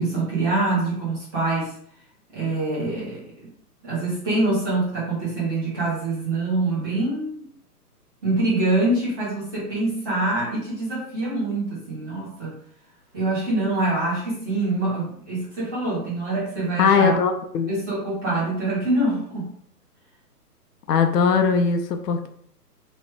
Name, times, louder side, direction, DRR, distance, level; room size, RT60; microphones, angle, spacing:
voice 1, 0.0-1.7 2.3-3.5 3.8-7.4 8.2-12.5 13.1-17.1 17.7-19.5, right 2 dB, 15° right, -9 dB, 0.7 m, -25 dB
voice 2, 16.8-17.7 20.9-22.3, left 6 dB, 80° left, 6 dB, 0.6 m, -20 dB
3.0 x 2.2 x 3.1 m, 0.63 s
hypercardioid pair, 155°, 48 cm